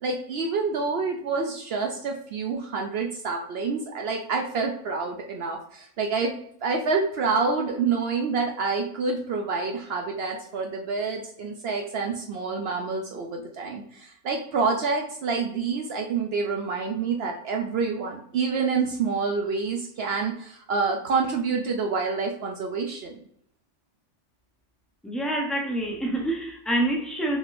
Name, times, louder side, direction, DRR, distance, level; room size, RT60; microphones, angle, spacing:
voice 1, 0.0-6.3 6.6-23.2, right 4 dB, 65° right, 2 dB, 0.7 m, -27 dB
voice 2, 25.0-27.4, right 1 dB, ahead, 0 dB, 0.4 m, -27 dB
5.1 x 3.4 x 2.5 m, 0.68 s
omnidirectional pair, 1.3 m